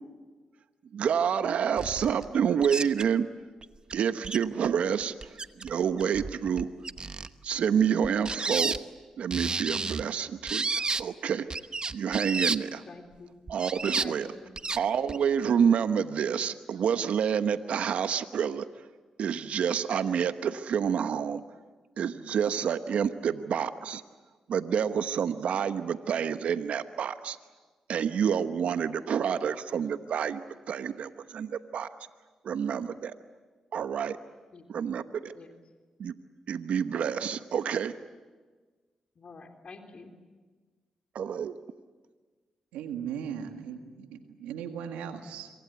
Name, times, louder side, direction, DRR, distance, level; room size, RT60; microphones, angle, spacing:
voice 1, 0.9-3.3 3.9-5.3 5.6-6.7 7.4-8.7 9.2-11.5 11.9-12.8 13.5-14.3 14.8-18.6 19.2-21.4 22.0-24.0 24.5-27.4 27.9-30.4 30.7-31.9 32.4-33.1 33.7-34.2 34.7-35.3 36.0-36.1 36.5-37.9 41.1-41.6, right 7 dB, 70° right, 11 dB, 1.0 m, -28 dB
sound 1, 1.8-2.3 2.6-3.0 3.6-3.7 3.9-4.0 4.2-4.7 5.0-5.7 6.0-7.3 8.0-8.8 9.3-10.0 10.5-11.0 11.5-12.6 13.5-14.1 14.6-14.8 15.1-15.2, right 4 dB, 40° right, 1.0 m, -31 dB
voice 2, 12.9-13.3 14.0-14.5 34.5-34.7 35.3-35.5 39.1-40.1, left 3 dB, 55° left, 4 dB, 3.5 m, -47 dB
voice 3, 42.7-45.5, right 8 dB, 90° right, 6 dB, 1.8 m, -38 dB
26.5 x 24.0 x 8.3 m, 1.4 s
supercardioid pair, 45°, 2 cm